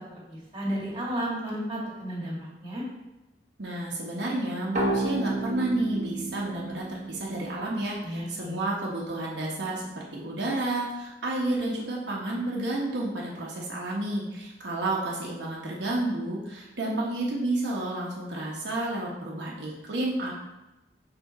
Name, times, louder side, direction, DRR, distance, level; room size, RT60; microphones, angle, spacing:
voice 1, 0.3-2.8 8.0-8.7, equal, 30° right, -5 dB, 2.0 m, -33 dB
voice 2, 3.6-9.8 10.1-20.3, right 2 dB, 80° right, -4 dB, 1.1 m, -30 dB
sound 1, 4.7-8.2, right 2 dB, 45° right, 1.1 m, -32 dB
5.9 x 3.9 x 4.1 m, 1.0 s
head